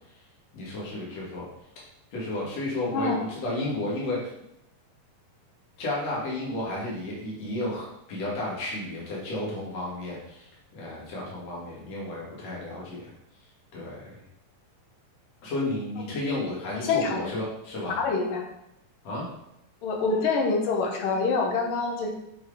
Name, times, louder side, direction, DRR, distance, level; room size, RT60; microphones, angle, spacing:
voice 1, 0.5-1.5 2.1-4.3 5.8-10.5 10.7-13.1 13.7-14.2 15.4-18.0 19.0-19.3, left 1 dB, 50° left, -5 dB, 3.5 m, -32 dB
voice 2, 2.9-3.3 16.0-16.1 16.7-17.3 18.0-18.4 19.8-22.1, left 4 dB, 85° left, 1 dB, 3.0 m, -26 dB
9.0 x 5.0 x 5.1 m, 0.82 s
omnidirectional pair, 3.8 m